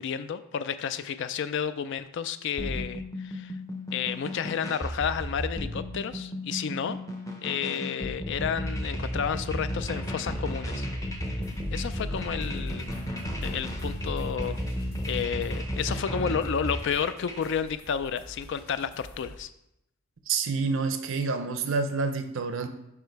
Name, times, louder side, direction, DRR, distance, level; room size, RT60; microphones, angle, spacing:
voice 1, 0.0-3.6 3.9-7.0 7.4-10.9 11.7-12.9 13.4-14.6 15.1-19.5, left 7 dB, 50° left, 12 dB, 0.3 m, -31 dB
sound 1, 2.6-17.5, equal, 15° left, 0.6 m, -33 dB
sound 2, 9.2-10.5 11.0-12.4 12.9-13.3 13.7-15.9 16.1-16.8, right 1 dB, 90° left, 1.4 m, -45 dB
sound 3, 11.4-19.4, left 1 dB, 70° left, 1.2 m, -49 dB
voice 2, 20.3-22.7, right 4 dB, 60° right, 9 dB, 0.5 m, -28 dB
5.5 x 4.9 x 4.6 m, 0.85 s
head